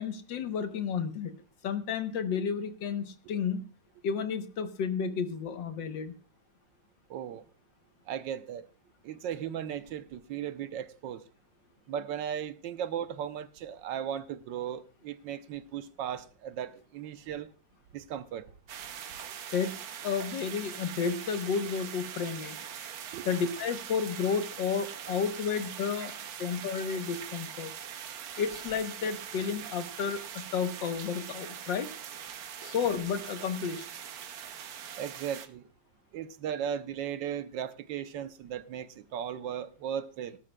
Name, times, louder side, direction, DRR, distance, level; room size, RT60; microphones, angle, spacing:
voice 1, 0.0-1.3 1.6-3.7 4.0-6.2 19.5-22.6 23.3-27.7 28.4-31.9 32.6-33.9, left 6 dB, 75° left, 1.7 m, -32 dB
voice 2, 7.1-7.4 8.1-8.7 9.0-11.2 11.9-17.5 17.9-18.5 23.1-23.3 35.0-35.7 36.1-40.4, right 9 dB, 80° right, 1.4 m, -36 dB
sound 1, 18.7-35.5, right 9 dB, 60° right, 1.1 m, -42 dB
18.5 x 12.0 x 2.2 m
omnidirectional pair, 2.0 m